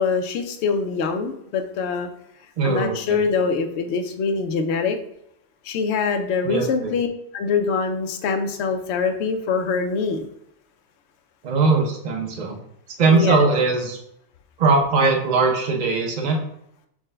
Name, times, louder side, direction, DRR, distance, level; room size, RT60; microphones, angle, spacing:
voice 1, 0.0-2.1 2.6-5.0 5.6-7.1 7.3-10.3 13.1-13.4, left 5 dB, 65° left, 5 dB, 0.7 m, -24 dB
voice 2, 2.6-3.2 6.4-7.0 11.4-12.6 13.0-14.0 14.6-16.4, right 3 dB, 70° right, 1 dB, 0.4 m, -20 dB
5.9 x 2.2 x 3.2 m, 0.76 s
omnidirectional pair, 1.6 m